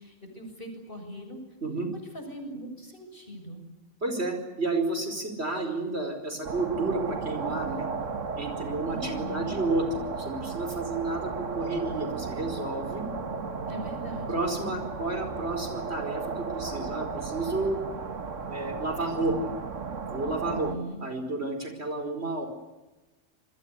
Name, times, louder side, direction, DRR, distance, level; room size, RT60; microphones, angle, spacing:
voice 1, 0.0-1.4 2.1-3.6 8.9-9.6 13.7-14.5 20.5-21.0, equal, 45° left, 4 dB, 7.4 m, -40 dB
voice 2, 4.0-7.9 8.4-13.1 14.3-17.8 18.4-19.5 20.0-20.7 21.0-22.5, right 2 dB, 60° right, 6 dB, 5.2 m, -31 dB
sound 1, 6.4-20.7, right 5 dB, 85° right, 2.0 m, -35 dB
28.0 x 21.5 x 8.3 m, 1.1 s
omnidirectional pair, 1.3 m